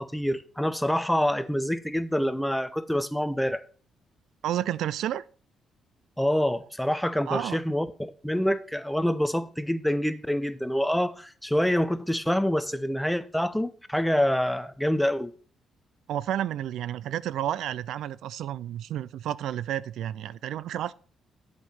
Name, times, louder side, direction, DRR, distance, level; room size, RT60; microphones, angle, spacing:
voice 1, 0.0-3.6 6.2-15.3, equal, 5° left, 0.7 m, -26 dB
voice 2, 4.4-5.2 7.3-7.6 16.1-20.9, right 11 dB, 80° right, 0.3 m, -31 dB
8.1 x 5.2 x 5.6 m
cardioid pair, 90°, 0 cm